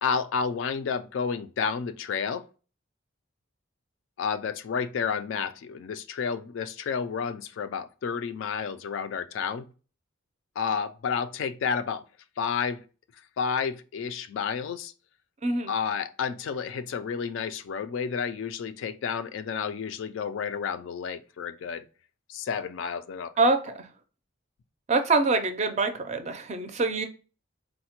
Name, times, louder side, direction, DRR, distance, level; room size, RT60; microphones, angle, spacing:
voice 1, 0.0-2.4 4.2-9.7 10.6-12.0 12.4-12.8 13.4-14.9 15.7-21.8 22.3-23.3, left 6 dB, 70° left, 0.3 m, -31 dB
voice 2, 15.4-15.7 23.4-23.9 24.9-27.1, right 3 dB, 35° right, 0.4 m, -25 dB
4.1 x 2.1 x 2.8 m
head